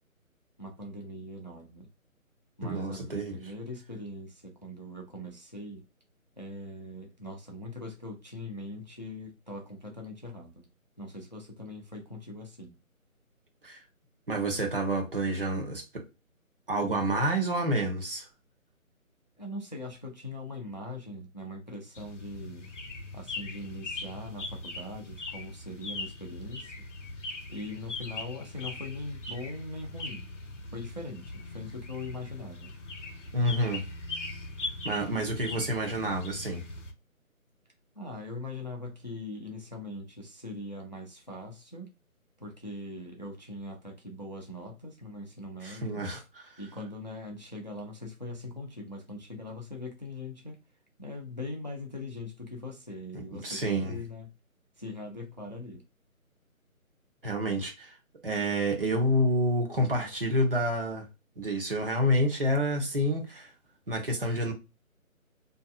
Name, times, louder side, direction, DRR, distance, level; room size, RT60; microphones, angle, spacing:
voice 1, 0.6-1.9 2.6-5.8 6.4-10.6 11.0-12.7 19.4-22.7 23.1-26.7 27.5-30.3 30.7-32.7 38.0-41.9 42.4-46.0 46.6-50.6 51.0-54.3 54.8-55.8, left 2 dB, 35° left, 0.5 m, -41 dB
voice 2, 2.6-3.4 13.6-13.8 14.3-16.0 16.7-18.3 33.3-33.8 34.8-36.6 45.6-46.2 53.3-54.0 57.2-58.0 58.2-61.1 61.4-63.5 63.9-64.5, equal, 40° right, 0.8 m, -28 dB
sound 1, 21.9-36.9, left 2 dB, 60° left, 0.8 m, -40 dB
2.6 x 2.4 x 2.4 m
figure-of-eight pair, 155°, 42 cm